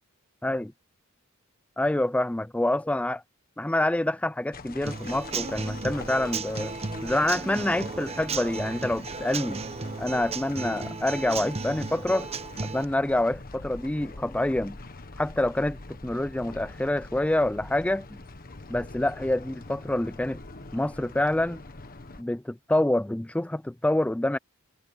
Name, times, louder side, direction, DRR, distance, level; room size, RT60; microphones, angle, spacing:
voice 1, 1.8-3.2 3.6-6.7 7.0-9.6 10.0-12.3 12.6-14.8 15.2-18.2 18.7-20.4 20.7-21.6 22.2-24.4, left 1 dB, 5° left, 0.4 m, -27 dB
sound 1, 4.5-22.2, left 2 dB, 45° left, 1.5 m, -44 dB
Human voice / Acoustic guitar / Drum, 4.8-12.8, right 4 dB, 30° right, 0.9 m, -35 dB
head